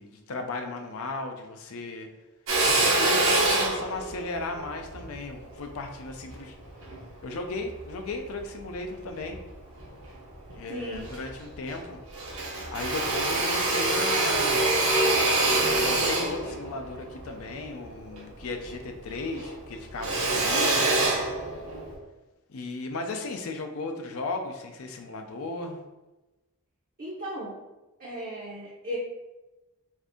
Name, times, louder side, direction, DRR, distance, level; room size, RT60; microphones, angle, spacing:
voice 1, 0.0-2.1 2.6-6.5 7.2-9.4 10.5-12.0 12.7-14.7 15.6-20.9 22.5-25.8, left 3 dB, 75° left, 5 dB, 0.4 m, -35 dB
Drill, 2.5-7.0 7.6-8.7 9.2-10.1 10.5-10.6 10.9-11.9 12.1-18.8 19.1-21.9, right 2 dB, 70° right, 0.8 m, -26 dB
voice 2, 10.7-11.2 27.0-27.5 28.0-29.0, equal, 40° right, -6 dB, 0.6 m, -36 dB
2.6 x 2.5 x 3.5 m, 1.1 s
head